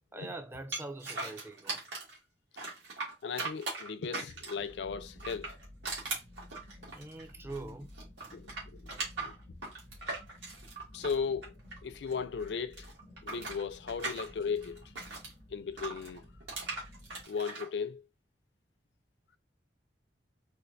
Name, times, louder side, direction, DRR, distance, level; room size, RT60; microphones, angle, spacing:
voice 1, 0.1-1.8 6.9-7.9, right 2 dB, 15° right, 0.3 m, -43 dB
sound 1, 0.7-2.2 2.6-4.7 5.2-7.7 7.9-12.1 12.4-15.3 15.8-17.7, right 3 dB, 85° right, 1.8 m, -39 dB
voice 2, 3.2-5.5 8.3-8.9 9.2-9.3 10.9-11.5 11.8-12.9 13.2-14.8 15.5-16.2 17.3-18.0, left 6 dB, 70° left, 0.4 m, -36 dB
sound 2, 4.5-17.2, left 1 dB, 60° right, 2.3 m, -53 dB
4.4 x 2.5 x 2.5 m
head